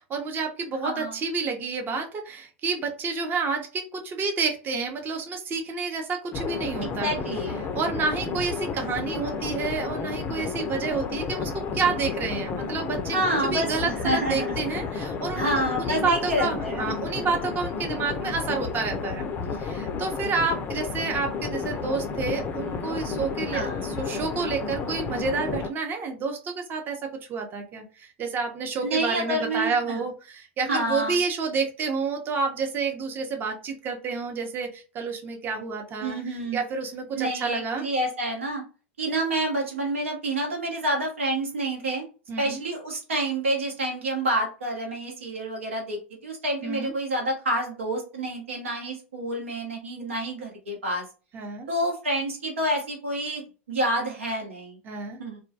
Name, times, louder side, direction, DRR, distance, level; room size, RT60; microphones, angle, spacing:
voice 1, 0.1-7.1 7.7-13.2 13.5-19.3 19.6-36.2 36.5-37.8 42.3-42.6 46.6-46.9 51.3-51.7 54.8-55.2, right 4 dB, 30° right, 3 dB, 0.7 m, -29 dB
voice 2, 0.8-1.2 6.8-7.6 13.1-14.8 15.3-17.3 23.5-23.9 28.8-30.0 30.6-31.2 36.0-36.6 37.1-38.6 39.0-42.0 42.4-51.0 51.7-54.8 55.2-55.4, right 1 dB, 85° right, 1 dB, 1.0 m, -28 dB
sound 1, 6.3-25.7, left 5 dB, 30° left, 0.4 m, -31 dB
2.3 x 2.1 x 2.7 m, 0.35 s
hypercardioid pair, 105°, 7 cm